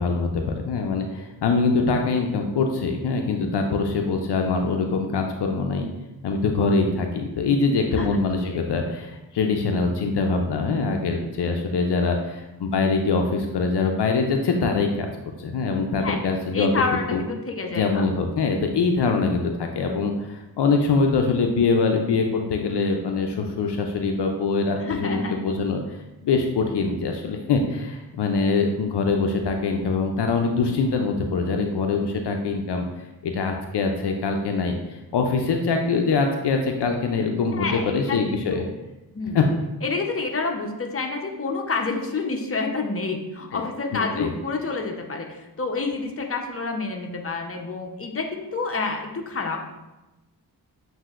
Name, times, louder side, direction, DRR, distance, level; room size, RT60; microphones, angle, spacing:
voice 1, 0.0-5.9 6.2-15.1 15.4-16.7 17.1-17.2 17.7-32.8 33.2-38.7 39.3-39.4 43.5-43.6 44.2-44.3, left 4 dB, 75° left, 3 dB, 0.5 m, -23 dB
voice 2, 16.5-18.0 24.8-25.3 37.5-38.7 39.1-39.4 39.8-49.8, left 3 dB, 35° left, 2 dB, 0.8 m, -28 dB
7.4 x 2.7 x 2.4 m, 1.0 s
cardioid pair, 45°, 41 cm